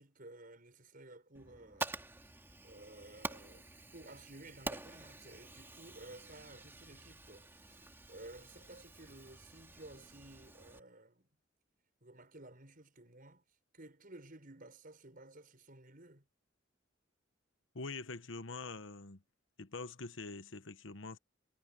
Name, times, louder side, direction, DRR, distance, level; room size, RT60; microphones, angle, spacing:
voice 1, 0.0-1.9 2.6-11.3 12.0-13.4 13.7-16.3, right 2 dB, 45° right, 6.3 m, -54 dB
Fire, 1.3-10.8, right 2 dB, 10° right, 2.4 m, -48 dB
voice 2, 17.7-19.2 19.6-21.2, left 3 dB, 80° left, 1.2 m, -44 dB
head